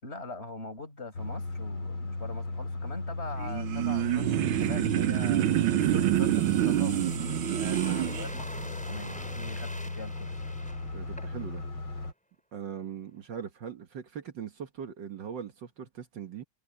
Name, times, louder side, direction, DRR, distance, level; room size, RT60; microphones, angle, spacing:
voice 1, 0.0-5.5 5.8-7.0 7.6-10.3, left 2 dB, 30° left, 5.9 m, -42 dB
sound 1, 1.1-12.1, left 2 dB, 85° left, 4.9 m, -36 dB
sound 2, 3.3-11.6 12.0-12.1, equal, 5° left, 6.2 m, -46 dB
sound 3, 3.4-8.3, right 15 dB, 85° right, 1.5 m, -27 dB
voice 2, 10.9-11.6 12.5-16.4, right 8 dB, 65° right, 1.9 m, -40 dB
omnidirectional pair, 2.2 m